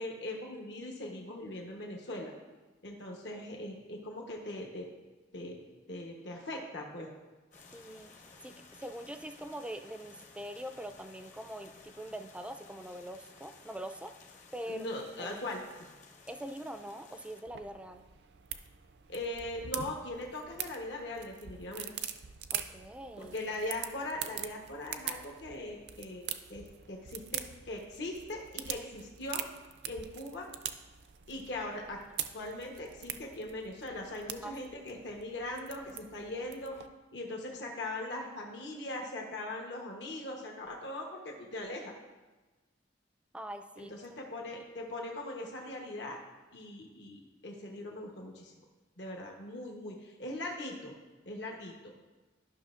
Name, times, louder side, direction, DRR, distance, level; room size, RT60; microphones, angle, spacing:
voice 1, 0.0-2.3 2.8-4.9 5.3-5.6 5.9-7.1 14.7-15.6 19.1-21.9 23.2-29.4 29.8-30.5 31.3-32.0 32.3-36.8 37.1-41.9 43.8-46.2 46.5-48.5 49.0-50.9 51.2-51.9, left 1 dB, 70° left, 0 dB, 1.0 m, -40 dB
sound 1, 7.5-17.4, left 4 dB, 45° left, 0.8 m, -56 dB
voice 2, 7.7-8.1 8.4-14.8 15.2-15.4 16.2-18.0 22.5-23.4 34.4-34.8 43.3-43.9, right 1 dB, 5° right, 7 dB, 0.3 m, -43 dB
sound 2, 17.5-36.9, right 10 dB, 65° right, 0.4 m, -43 dB
12.5 x 5.8 x 2.5 m, 1.2 s
head